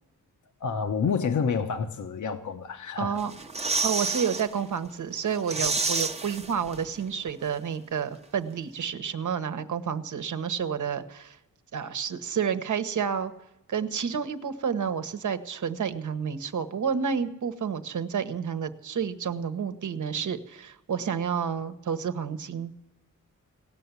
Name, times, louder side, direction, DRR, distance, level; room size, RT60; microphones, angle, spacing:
voice 1, 0.6-3.2 5.6-5.7, left 6 dB, 65° left, 7 dB, 1.0 m, -28 dB
voice 2, 3.0-3.3 3.8-11.4 11.7-13.3 13.7-22.7, right 7 dB, 65° right, 10 dB, 1.1 m, -30 dB
sound 1, 3.2-4.5 4.9-5.0 5.3-7.0 7.3-7.4, right 3 dB, 20° right, 0.8 m, -29 dB
17.5 x 6.9 x 9.7 m, 0.90 s
cardioid pair, 90°, 32 cm